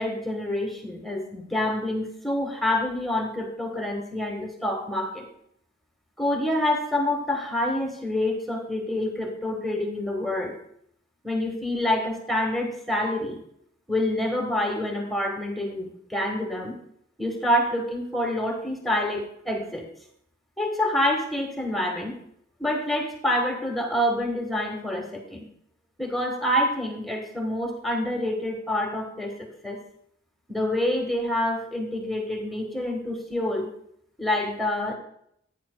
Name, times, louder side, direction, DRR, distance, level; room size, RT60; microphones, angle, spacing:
voice 1, 0.0-5.3 6.2-10.6 11.2-13.4 13.9-16.7 17.2-19.8 20.6-22.1 22.6-25.5 26.0-29.3 29.6-29.8 30.5-33.7 34.2-34.9, left 1 dB, ahead, 1 dB, 1.5 m, -27 dB
16.0 x 9.0 x 2.3 m, 0.69 s
head